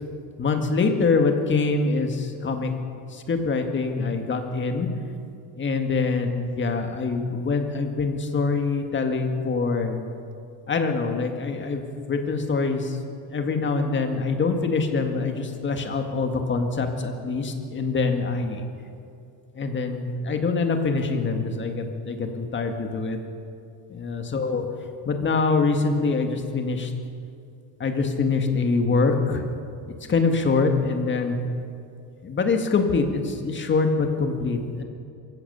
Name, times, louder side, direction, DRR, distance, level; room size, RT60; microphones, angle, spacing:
voice 1, 0.4-2.7 3.1-4.9 5.6-10.0 10.7-13.0 13.3-18.6 19.6-23.2 23.9-24.7 25.1-26.9 27.8-29.5 30.1-31.4 32.2-34.8, left 4 dB, 25° left, 5 dB, 1.9 m, -24 dB
23.0 x 16.0 x 7.0 m, 2.5 s
cardioid pair, 160°, 45 cm